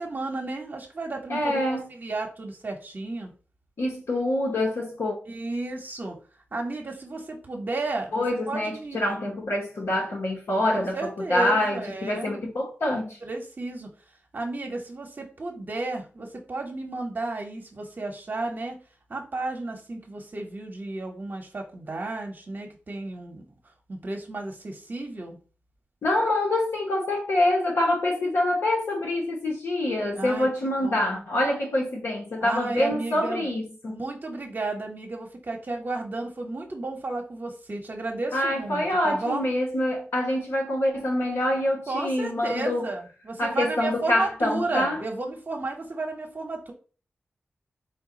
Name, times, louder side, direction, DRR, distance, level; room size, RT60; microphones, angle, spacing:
voice 1, 0.0-3.3 5.3-6.2 6.5-9.0 10.7-12.4 13.2-13.9 14.3-18.8 19.1-23.5 23.9-25.4 30.1-30.5 30.8-31.2 32.4-33.5 33.9-39.5 41.9-46.7, right 2 dB, 50° right, 0.9 m, -33 dB
voice 2, 1.3-1.9 3.8-5.1 8.1-13.2 26.0-34.0 38.3-42.9 43.4-45.0, left 1 dB, 85° left, 1.1 m, -26 dB
4.4 x 2.2 x 3.9 m
cardioid pair, 65°, 4 cm